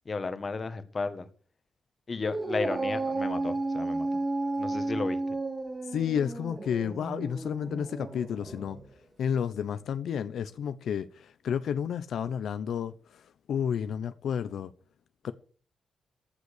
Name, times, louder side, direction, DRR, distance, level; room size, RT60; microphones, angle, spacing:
voice 1, 0.0-1.3 2.1-4.1 4.6-5.2, left 4 dB, 35° left, 1.6 m, -33 dB
Dog, 2.2-8.8, right 2 dB, 25° right, 2.5 m, -33 dB
voice 2, 5.9-8.8 9.2-13.2 13.5-14.7 15.2-15.3, left 8 dB, 80° left, 0.8 m, -31 dB
15.0 x 8.1 x 6.7 m
wide cardioid pair, 130°, 0 cm